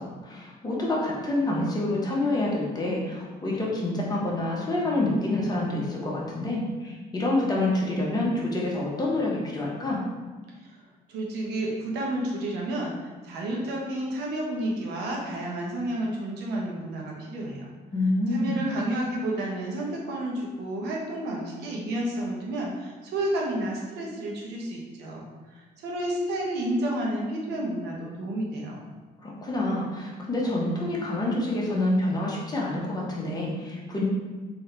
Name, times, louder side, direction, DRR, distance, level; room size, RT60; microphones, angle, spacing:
voice 1, 0.0-10.0 17.9-18.6 29.2-34.0, left 2 dB, 25° left, -4 dB, 1.0 m, -27 dB
voice 2, 11.1-17.7 18.3-25.3 25.5-28.8, right 1 dB, 85° right, -2 dB, 1.0 m, -31 dB
3.7 x 2.9 x 3.3 m, 1.3 s
cardioid pair, 110°, 17 cm